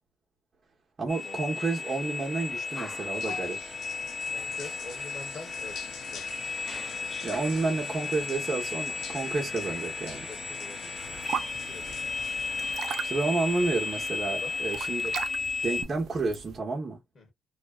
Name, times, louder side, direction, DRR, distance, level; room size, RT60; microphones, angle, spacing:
voice 1, 1.0-3.6 7.2-10.3 13.0-15.1 15.6-17.0, right 3 dB, 35° right, 0.9 m, -30 dB
sound 1, 1.1-15.8, left 4 dB, 25° left, 0.5 m, -34 dB
sound 2, 2.1-12.8, left 6 dB, 80° left, 0.5 m, -46 dB
voice 2, 4.3-6.2 10.1-11.4 11.6-12.1 14.2-14.5 17.1-17.3, left 3 dB, 45° left, 1.1 m, -45 dB
sound 3, 11.0-16.6, right 8 dB, 70° right, 0.4 m, -40 dB
2.5 x 2.1 x 2.3 m
cardioid pair, 90°, 0 cm